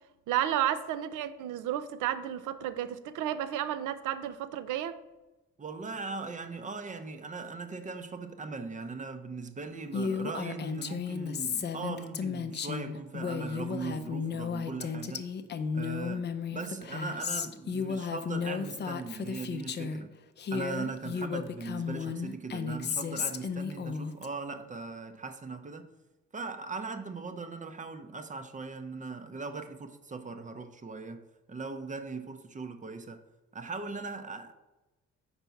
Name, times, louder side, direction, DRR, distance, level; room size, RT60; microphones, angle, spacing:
voice 1, 0.3-5.0, right 11 dB, 85° right, 0.5 m, -32 dB
voice 2, 5.6-15.3 15.7-20.1 20.5-25.9 26.3-31.2 31.5-33.2 33.5-34.5, right 4 dB, 25° right, 0.6 m, -39 dB
Female speech woman speaking, 9.9-20.0 20.4-24.3, left 6 dB, 35° left, 0.5 m, -34 dB
4.5 x 4.1 x 5.7 m
cardioid pair, 90°, 30 cm